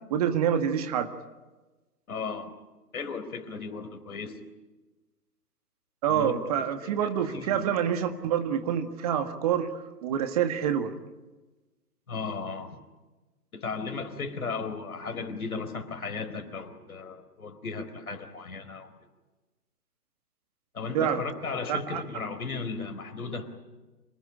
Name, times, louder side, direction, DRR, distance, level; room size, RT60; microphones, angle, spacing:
voice 1, 0.1-1.1 6.0-9.7 10.0-10.9 20.9-21.2 21.7-22.0, right 9 dB, 25° right, 8 dB, 1.7 m, -27 dB
voice 2, 2.1-2.5 2.9-4.5 6.1-7.7 12.1-12.8 13.5-18.9 20.7-23.5, left 4 dB, 60° left, 9 dB, 4.2 m, -36 dB
27.0 x 19.0 x 9.9 m, 1.2 s
figure-of-eight pair, 140°, 47 cm